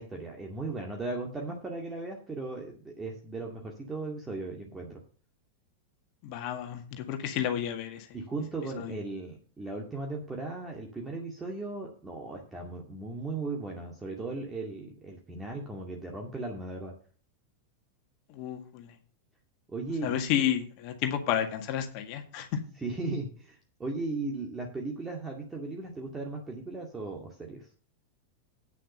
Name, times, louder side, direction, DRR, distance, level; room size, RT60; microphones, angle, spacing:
voice 1, 0.0-5.0 8.1-16.9 19.7-20.3 22.8-27.7, right 3 dB, 15° right, 0 dB, 2.3 m, -37 dB
voice 2, 6.2-8.1 8.8-8.9 18.3-18.9 20.0-22.6, left 10 dB, 45° left, 5 dB, 1.8 m, -31 dB
9.4 x 7.6 x 5.5 m, 0.40 s
figure-of-eight pair, 90°, 0 cm